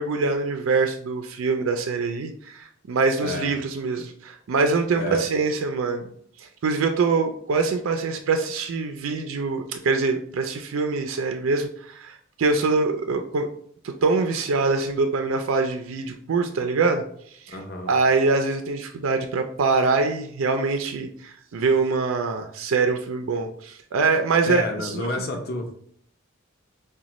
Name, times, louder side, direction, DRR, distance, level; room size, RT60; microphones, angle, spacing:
voice 1, 0.0-6.1 6.4-13.5 13.8-17.0 17.4-17.6 17.9-25.1, right 4 dB, 80° right, 5 dB, 0.4 m, -24 dB
voice 2, 17.5-17.9 24.4-25.7, left 1 dB, 50° left, 3 dB, 0.7 m, -30 dB
5.0 x 2.2 x 2.9 m, 0.64 s
head